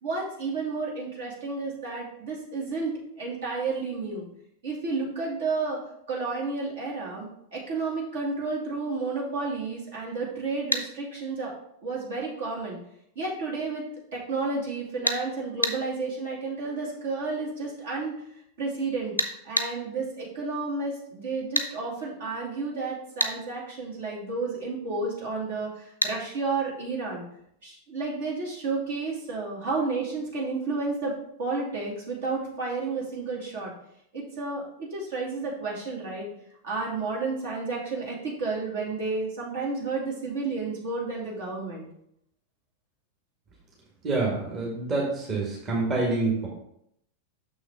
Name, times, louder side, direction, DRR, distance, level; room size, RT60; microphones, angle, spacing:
voice 1, 0.0-4.2 4.6-5.8 6.1-7.3 7.5-11.5 11.8-12.8 13.2-13.8 14.1-18.2 18.6-19.1 19.4-27.2 27.6-31.1 31.4-33.7 34.1-36.3 36.6-41.9, right 3 dB, 60° right, -3 dB, 2.4 m, -31 dB
sound 1, 10.7-10.9 15.1-15.2 15.6-15.8 19.2-19.7 21.6-21.7 23.2-23.4 26.0-26.2, left 1 dB, 90° left, 0.6 m, -26 dB
voice 2, 44.0-46.5, right 3 dB, 30° right, -3 dB, 1.8 m, -27 dB
6.4 x 6.1 x 3.6 m, 0.72 s
figure-of-eight pair, 90°, 0 cm